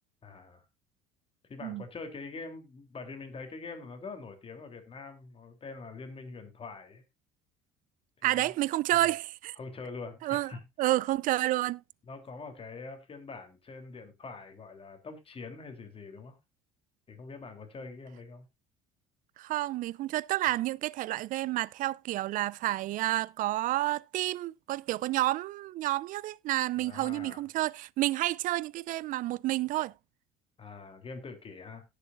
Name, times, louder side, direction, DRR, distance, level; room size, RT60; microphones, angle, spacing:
voice 1, 0.2-0.6 1.5-7.0 8.2-8.5 8.9-9.1 9.6-10.6 12.1-16.4 17.1-18.5 26.8-27.4 30.6-31.8, left 4 dB, 35° left, 3.3 m, -44 dB
voice 2, 8.2-9.6 10.2-10.5 10.8-11.8 19.4-29.9, right 16 dB, 55° right, 0.5 m, -30 dB
17.5 x 6.9 x 2.5 m
hypercardioid pair, 60°, 17 cm